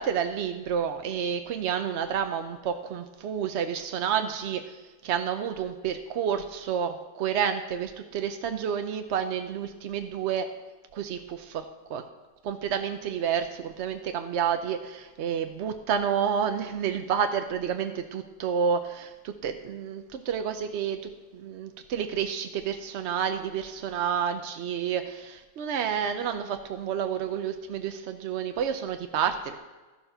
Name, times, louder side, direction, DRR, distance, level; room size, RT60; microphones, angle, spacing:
voice 1, 0.0-4.8 5.0-10.5 10.9-11.6 11.9-12.0 12.4-29.6, right 8 dB, 70° right, 7 dB, 0.6 m, -30 dB
13.0 x 6.8 x 5.5 m, 1.2 s
omnidirectional pair, 1.9 m